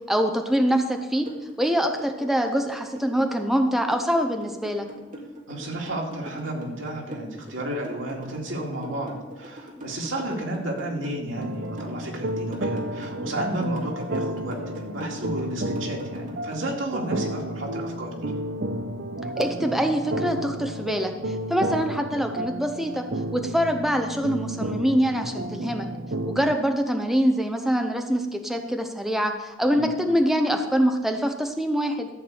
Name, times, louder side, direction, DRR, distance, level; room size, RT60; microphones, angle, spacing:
voice 1, 0.1-1.3 1.6-4.9 19.2-23.0 23.3-25.9 26.3-32.1, equal, ahead, 4 dB, 0.7 m, -24 dB
sound 1, 1.3-16.7, right 1 dB, 45° right, 2.1 m, -40 dB
voice 2, 5.5-18.3 29.7-30.0, right 1 dB, 90° right, -1 dB, 2.3 m, -32 dB
sound 2, 11.4-26.6, right 1 dB, 60° right, 0.6 m, -32 dB
13.5 x 4.6 x 7.9 m, 1.2 s
head